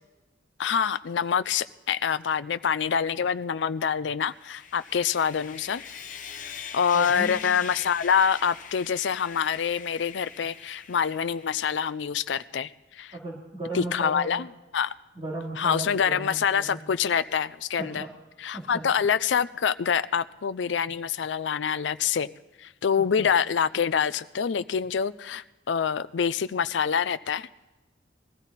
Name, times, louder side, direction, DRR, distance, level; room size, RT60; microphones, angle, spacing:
voice 1, 0.6-5.8 6.7-13.1 13.7-14.5 14.7-14.9 15.6-18.1 18.4-22.3 22.6-27.5, left 7 dB, 80° left, 14 dB, 0.4 m, -26 dB
Sawing, 4.3-11.8, left 7 dB, 45° left, 1.1 m, -42 dB
voice 2, 6.9-7.4 13.1-14.5 15.1-16.8 17.8-18.1 18.5-18.9 23.0-23.3, right 2 dB, 35° right, -6 dB, 2.6 m, -36 dB
20.5 x 14.5 x 4.1 m, 1.1 s
head